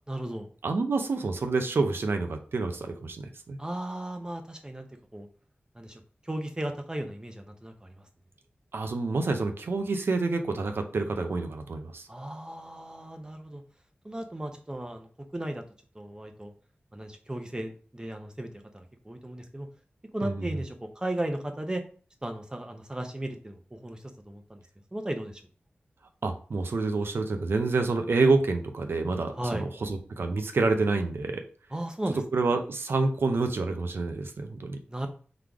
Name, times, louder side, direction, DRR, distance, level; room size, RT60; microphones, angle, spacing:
voice 1, 0.1-0.5 3.6-4.9 5.1-5.3 5.7-8.0 12.1-13.6 14.0-15.6 15.9-16.5 16.9-18.5 18.7-19.7 20.1-21.8 22.2-24.6 24.9-25.4 29.3-29.7 31.7-32.2 34.9-35.1, right 1 dB, 20° right, 5 dB, 0.8 m, -35 dB
voice 2, 0.6-3.6 8.7-12.1 20.2-20.5 26.2-31.4 32.3-34.8, right 3 dB, 75° right, 6 dB, 0.6 m, -28 dB
4.0 x 3.2 x 3.5 m, 0.41 s
wide cardioid pair, 80°, 4 cm